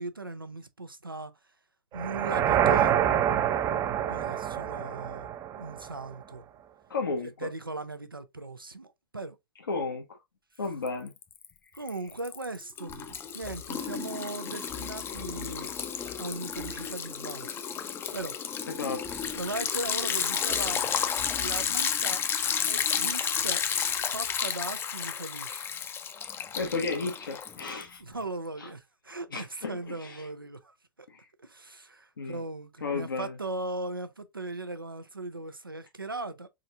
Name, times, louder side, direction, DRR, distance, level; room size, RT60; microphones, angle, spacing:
voice 1, 0.0-1.3 1.9-2.9 4.1-5.3 5.6-6.4 7.4-9.4 11.7-15.7 16.2-17.6 18.1-18.3 19.3-20.8 21.4-22.2 22.7-23.6 24.1-25.6 28.0-31.1 31.4-36.5, right 2 dB, 90° right, 0.6 m, -38 dB
sound 1, 1.9-6.1, right 10 dB, 30° right, 0.5 m, -26 dB
voice 2, 6.9-7.5 9.7-10.0 10.6-11.1 18.7-19.0 26.6-28.0 28.6-28.7 29.3-30.3 31.1-31.3 32.2-32.4 32.8-33.3, left 4 dB, 75° left, 0.9 m, -33 dB
Liquid, 10.9-11.4 11.8-28.0, left 7 dB, 20° left, 0.5 m, -32 dB
4.3 x 3.8 x 2.4 m
figure-of-eight pair, 95°, 11 cm